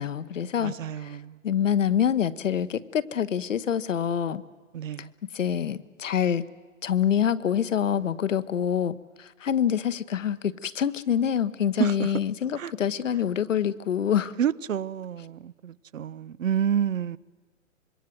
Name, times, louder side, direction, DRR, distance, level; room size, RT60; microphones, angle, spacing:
voice 1, 0.0-0.7 1.0-1.2 1.4-4.4 5.3-6.5 6.8-14.3, left 9 dB, 70° left, 1.1 m, -26 dB
voice 2, 0.6-1.4 4.7-5.1 11.8-12.1 12.6-12.7 14.4-17.2, right 9 dB, 80° right, 0.7 m, -29 dB
25.5 x 22.0 x 7.7 m
hypercardioid pair, 130°, 39 cm